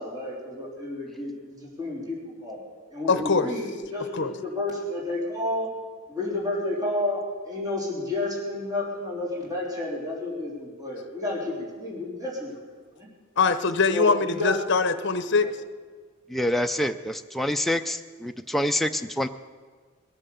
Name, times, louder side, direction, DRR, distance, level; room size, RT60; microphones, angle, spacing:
voice 1, 0.0-2.6 2.9-5.7 6.1-7.2 7.4-12.6 13.0-13.1 13.9-14.6 15.4-15.5, left 2 dB, 20° right, -5 dB, 3.6 m, -31 dB
voice 2, 3.1-3.5 4.1-4.3 13.4-15.5, left 4 dB, 55° left, 11 dB, 0.8 m, -22 dB
voice 3, 16.3-19.3, left 1 dB, ahead, 6 dB, 0.4 m, -27 dB
20.5 x 9.0 x 7.1 m, 1.5 s
head